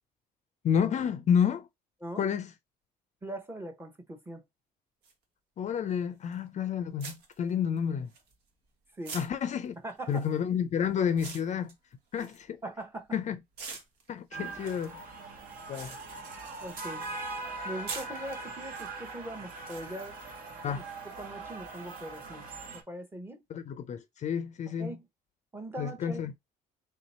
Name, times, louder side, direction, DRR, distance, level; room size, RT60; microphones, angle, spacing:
voice 1, 0.6-1.7 2.2-2.5 5.6-8.1 9.1-9.7 10.1-11.7 12.1-12.6 13.1-13.4 14.1-14.9 15.7-16.0 20.6-20.8 23.5-25.0 25.8-26.3, left 7 dB, 45° left, 0.5 m, -30 dB
voice 2, 3.2-4.4 8.9-9.2 9.8-10.3 12.2-12.3 12.6-13.1 14.4-14.5 16.6-17.0 17.6-20.2 21.2-22.5 22.7-23.4 24.8-25.1 25.5-26.2, right 1 dB, 15° right, 0.9 m, -41 dB
sound 1, 5.0-5.1 6.3-6.5 7.0-8.7 9.0-13.1 13.5-17.0 17.3-18.9 19.7-19.8, right 4 dB, 75° right, 1.3 m, -45 dB
sound 2, 14.3-22.8, right 3 dB, 55° right, 1.3 m, -41 dB
3.5 x 2.8 x 4.2 m
cardioid pair, 110°, 17 cm